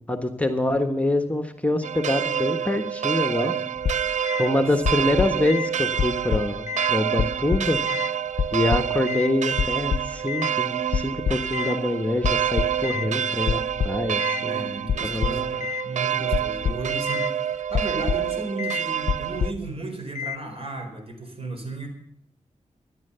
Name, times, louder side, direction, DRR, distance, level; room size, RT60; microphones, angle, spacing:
voice 1, 0.1-3.5 4.4-7.8 8.5-14.6 15.0-15.5, left 1 dB, 10° left, 6 dB, 1.4 m, -25 dB
sound 1, 1.8-19.5, right 9 dB, 70° right, 0.5 m, -27 dB
sound 2, 3.8-4.5 4.8-5.7 6.0-6.9 7.2-8.1 8.4-9.3 9.6-10.5 10.9-11.8 12.2-13.1 13.5-14.4 14.9-15.8 16.3-17.3 17.7-18.3 18.6-18.8 19.1-19.7 20.1-20.4, left 7 dB, 65° left, 0.6 m, -27 dB
voice 2, 14.4-21.9, right 2 dB, 50° right, 5 dB, 4.2 m, -34 dB
14.0 x 10.5 x 6.9 m, 0.70 s
cardioid pair, 55°, 13 cm